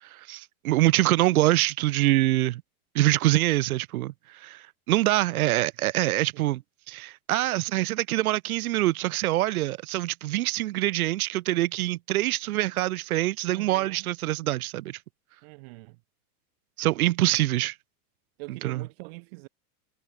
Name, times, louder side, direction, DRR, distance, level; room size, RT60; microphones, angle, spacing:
voice 1, 0.0-2.6 2.9-15.0 16.8-17.7 18.5-18.9, right 16 dB, 65° right, 1.6 m, -25 dB
voice 2, 13.5-14.1 15.4-16.0 18.4-19.5, right 28 dB, 40° right, 1.9 m, -43 dB
supercardioid pair, 175°, 45 cm